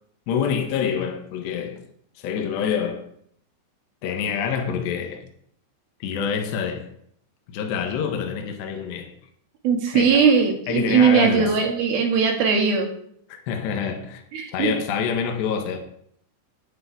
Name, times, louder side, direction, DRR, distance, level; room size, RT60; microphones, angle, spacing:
voice 1, 0.3-1.8 2.2-3.1 4.0-5.3 6.0-6.9 7.5-9.1 9.9-10.3 10.7-11.6 13.3-14.2 14.5-15.8, left 7 dB, 70° left, 3.4 m, -26 dB
voice 2, 9.6-12.9 14.3-14.7, right 6 dB, 60° right, 3.2 m, -19 dB
9.9 x 7.5 x 9.3 m
omnidirectional pair, 5.4 m